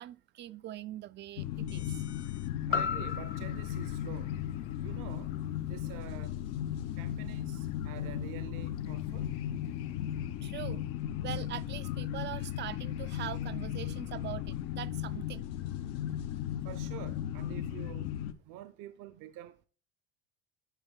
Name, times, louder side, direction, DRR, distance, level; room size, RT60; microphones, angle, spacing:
voice 1, 0.0-1.9 10.4-10.9 11.2-15.4, right 13 dB, 30° right, 0.4 m, -42 dB
sound 1, 1.4-18.3, left 11 dB, 75° left, 0.9 m, -36 dB
sound 2, 2.7-6.8 7.2-7.3, left 6 dB, 40° left, 0.9 m, -38 dB
voice 2, 2.7-4.3 4.8-5.3 5.7-6.4 6.9-9.3 16.6-18.1 18.4-19.7, right 13 dB, 60° right, 0.8 m, -47 dB
10.5 x 4.9 x 3.6 m
supercardioid pair, 105°, 35 cm